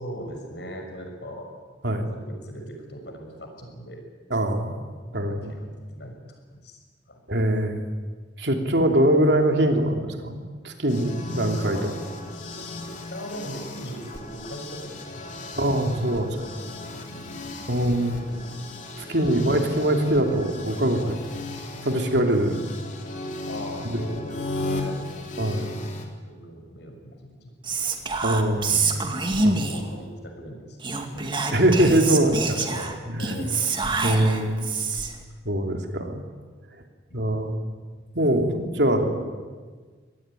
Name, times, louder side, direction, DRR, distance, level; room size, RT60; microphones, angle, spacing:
voice 1, 0.0-1.5 2.0-4.0 5.0-6.2 6.5-6.8 7.1-7.2 11.7-12.0 13.1-16.1 16.8-17.7 21.0-21.2 23.5-25.7 26.1-27.9 28.1-28.2 28.5-30.8 31.1-31.5 32.6-33.7, equal, 70° left, 3 dB, 6.6 m, -40 dB
voice 2, 4.3-4.8 5.1-5.5 7.3-7.8 8.4-11.8 15.6-16.5 17.7-18.3 19.0-21.0 21.8-22.6 25.4-25.7 28.2-28.8 29.4-29.6 31.5-32.6 33.2-33.4 34.0-34.7 35.4-36.2 37.1-37.6 38.1-39.2, right 1 dB, 70° right, 3 dB, 3.1 m, -23 dB
sound 1, 10.9-26.1, left 2 dB, 45° left, 3.6 m, -36 dB
Whispering, 27.6-29.9 30.8-35.2, right 3 dB, 25° right, 2.2 m, -26 dB
25.0 x 18.5 x 9.9 m, 1.5 s
head